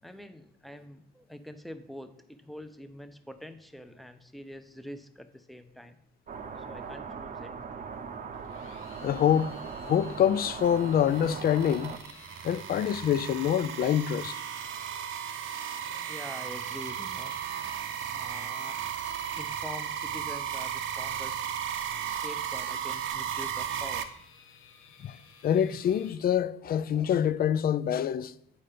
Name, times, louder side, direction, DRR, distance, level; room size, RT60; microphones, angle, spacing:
voice 1, 0.0-6.0 6.6-7.9 16.1-17.4 18.1-18.8 19.3-21.4 22.1-24.1, equal, ahead, 0.6 m, -45 dB
sound 1, 6.3-12.0, right 5 dB, 40° right, 0.7 m, -40 dB
sound 2, 8.3-26.2, left 6 dB, 80° left, 1.0 m, -55 dB
voice 2, 9.0-9.6 9.8-12.0 12.4-14.4 25.0-25.2 25.4-28.3, left 9 dB, 50° left, 0.4 m, -26 dB
sound 3, 10.6-24.0, right 9 dB, 75° right, 0.7 m, -35 dB
8.9 x 4.2 x 5.0 m
cardioid pair, 90°, 20 cm